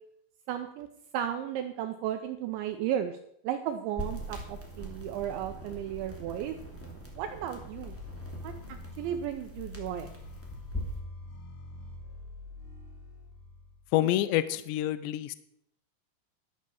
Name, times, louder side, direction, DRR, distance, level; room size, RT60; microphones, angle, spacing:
voice 1, 0.5-0.9 1.1-3.2 3.4-6.6 7.2-8.0 8.4-10.1, right 10 dB, 80° right, 7 dB, 2.8 m, -34 dB
sound 1, 4.0-11.0, right 1 dB, 10° left, 0.8 m, -42 dB
sound 2, 7.7-14.0, left 2 dB, 55° left, 3.3 m, -45 dB
voice 2, 13.9-15.4, left 13 dB, 85° left, 15 dB, 2.6 m, -27 dB
12.0 x 8.7 x 7.1 m, 0.73 s
omnidirectional pair, 5.9 m